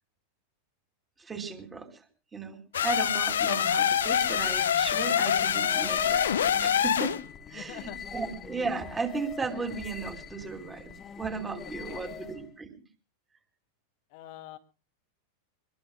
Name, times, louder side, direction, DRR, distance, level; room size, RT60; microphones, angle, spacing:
voice 1, 1.2-1.9 2.3-7.2 7.5-12.7, right 4 dB, 15° right, 5 dB, 2.8 m, -35 dB
sound 1, 2.7-7.2, left 9 dB, 65° left, 0.8 m, -25 dB
sound 2, 2.8-12.5, left 7 dB, 25° left, 1.2 m, -43 dB
voice 2, 7.5-8.0 11.9-12.2 14.1-14.6, left 15 dB, 45° left, 8 dB, 1.1 m, -44 dB
23.5 x 21.0 x 2.3 m, 0.34 s
figure-of-eight pair, 90°, 0 cm